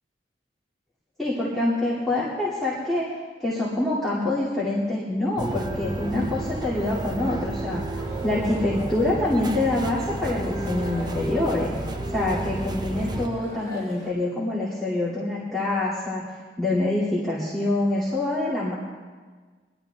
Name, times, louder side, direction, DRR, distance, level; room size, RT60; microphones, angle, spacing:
voice 1, 1.2-3.1 3.4-11.7 12.1-18.7, left 2 dB, ahead, -10 dB, 2.2 m, -26 dB
sound 1, 5.4-13.3, right 2 dB, 25° right, 0.6 m, -31 dB
sound 2, 7.9-14.1, left 1 dB, 20° left, 4.2 m, -41 dB
21.0 x 12.0 x 3.4 m, 1.4 s
head